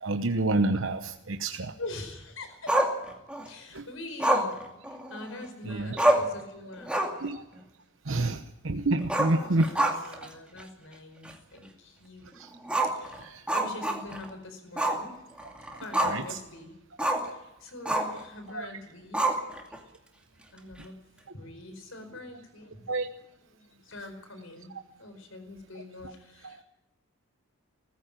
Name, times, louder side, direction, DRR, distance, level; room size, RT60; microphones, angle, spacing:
voice 1, 0.0-1.7 3.7-3.8 5.6-6.0 7.2-7.4 8.0-10.1 12.3-12.5 13.2-13.5 16.0-16.4 18.5-18.7 22.9-23.1 26.4-26.5, right 2 dB, 70° right, 6 dB, 1.0 m, -29 dB
voice 2, 1.8-2.8 3.4-4.5 4.9-7.2 9.4-12.4 12.8-15.2 15.8-16.8 17.2-19.3 20.5-20.9 21.3-22.9 23.5-24.7 25.0-26.6, left 2 dB, 75° left, 7 dB, 5.0 m, -44 dB
Growling, 2.7-3.5 4.2-5.4 5.7-5.8 6.0-6.4 6.8-7.3 7.6-7.7 9.0-10.3 10.6-10.7 11.2-11.3 12.6-14.3 14.8-15.0 15.4-16.3 17.0-17.3 17.8-18.2 19.1-19.8, right 1 dB, 5° right, 2.3 m, -27 dB
20.0 x 15.0 x 9.0 m, 0.92 s
head